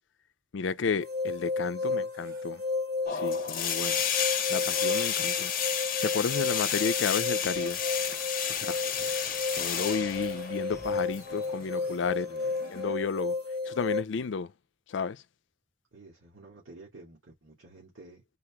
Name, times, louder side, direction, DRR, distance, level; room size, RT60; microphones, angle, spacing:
voice 1, 0.5-2.6 3.1-4.0 4.5-5.5 6.0-7.8 8.5-8.8 9.5-12.3 12.7-13.4 13.6-14.5 14.9-15.2, left 5 dB, 70° left, 0.4 m, -32 dB
sound 1, 1.0-14.0, left 3 dB, 50° right, 1.3 m, -33 dB
sound 2, 3.1-13.0, left 8 dB, 45° left, 0.7 m, -32 dB
sound 3, 7.4-12.5, left 1 dB, 15° left, 1.4 m, -53 dB
voice 2, 8.5-9.1 12.3-12.5 15.9-18.2, right 2 dB, 85° right, 1.9 m, -52 dB
4.0 x 2.9 x 3.4 m
head